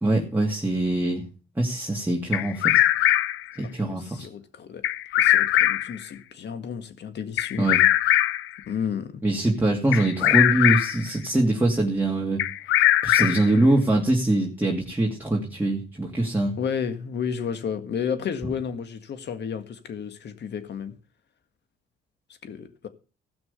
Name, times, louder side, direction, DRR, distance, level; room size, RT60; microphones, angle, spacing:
voice 1, 0.0-1.2 1.6-2.8 3.6-4.3 7.6-7.8 9.2-12.4 13.0-16.5, right 2 dB, 10° right, 2.5 m, -23 dB
Bird vocalization bird call bird song, 2.3-3.5 4.8-6.0 7.4-8.5 9.9-11.0 12.4-13.6, left 14 dB, 90° left, 0.6 m, -21 dB
voice 2, 3.8-4.8 5.2-7.8 8.7-9.2 16.6-21.0 22.4-22.9, left 7 dB, 60° left, 1.8 m, -32 dB
16.0 x 6.1 x 6.8 m
cardioid pair, 90°, 20 cm